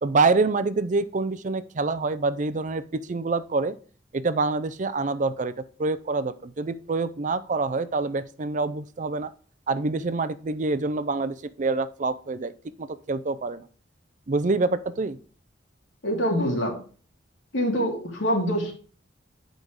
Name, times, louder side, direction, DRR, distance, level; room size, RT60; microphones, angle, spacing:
voice 1, 0.0-3.8 4.1-5.5 5.8-9.3 9.7-12.5 12.8-13.6 14.3-15.2, right 3 dB, 40° right, 14 dB, 0.5 m, -26 dB
voice 2, 16.0-16.7 17.5-18.8, equal, 85° left, 0 dB, 2.8 m, -25 dB
8.6 x 5.2 x 4.7 m, 0.40 s
head